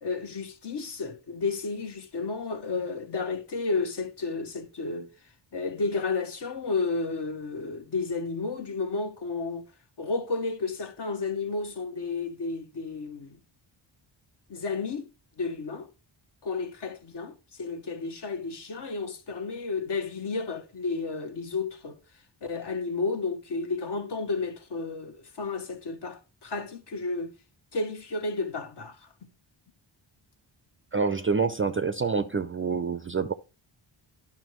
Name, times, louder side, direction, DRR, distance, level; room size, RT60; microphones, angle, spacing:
voice 1, 0.0-5.1 5.5-9.6 10.0-13.4 14.5-15.1 15.4-15.9 16.4-22.0 22.4-27.3 27.7-29.1, left 4 dB, 55° left, 1.1 m, -32 dB
voice 2, 30.9-33.3, right 5 dB, 30° right, 0.3 m, -27 dB
11.0 x 5.7 x 3.0 m
wide cardioid pair, 85°, 50 cm